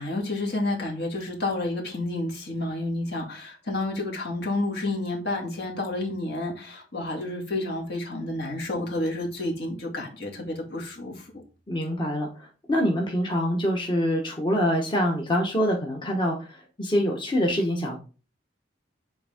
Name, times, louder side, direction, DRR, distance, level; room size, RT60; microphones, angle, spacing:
voice 1, 0.0-11.1, left 2 dB, 65° left, 0 dB, 2.0 m, -30 dB
voice 2, 11.7-12.3 12.7-16.5 16.8-18.0, equal, 25° left, 0 dB, 1.0 m, -25 dB
7.9 x 3.5 x 3.5 m, 0.35 s
head